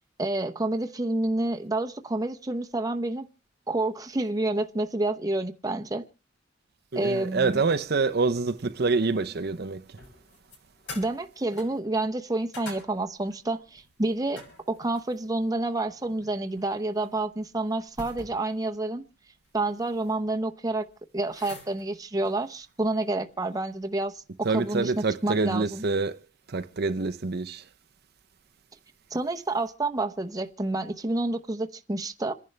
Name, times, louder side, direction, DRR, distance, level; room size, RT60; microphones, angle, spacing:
voice 1, 0.2-3.3 3.7-6.0 6.9-7.6 10.9-19.0 19.5-20.9 21.1-25.8 29.1-32.3, right 2 dB, 20° right, 0.8 m, -29 dB
voice 2, 6.9-9.8 24.4-26.2 26.5-27.6, right 4 dB, 55° right, 0.7 m, -26 dB
sound 1, 7.1-8.8 9.1-25.0, left 2 dB, 70° left, 6.2 m, -49 dB
27.5 x 10.5 x 3.3 m
head